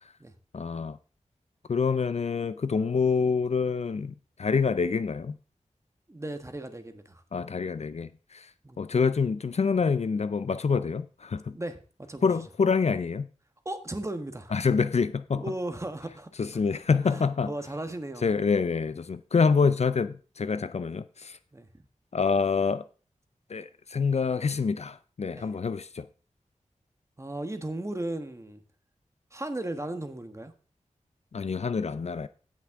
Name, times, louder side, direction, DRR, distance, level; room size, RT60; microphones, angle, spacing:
voice 1, 0.5-1.0 1.7-4.1 4.4-5.4 7.3-8.5 8.8-11.6 12.2-13.3 14.5-15.4 16.4-17.5 18.2-21.4 22.1-22.8 23.5-26.1 31.3-32.3, left 5 dB, 60° left, 0.5 m, -26 dB
voice 2, 6.1-7.2 8.6-8.8 11.5-11.8 12.1-12.3 13.6-14.5 15.3-16.3 17.0-18.3 21.5-21.7 25.3-25.5 27.2-28.6 29.3-30.5, right 1 dB, 25° right, 1.3 m, -36 dB
16.5 x 5.9 x 3.6 m
wide cardioid pair, 70°, 13 cm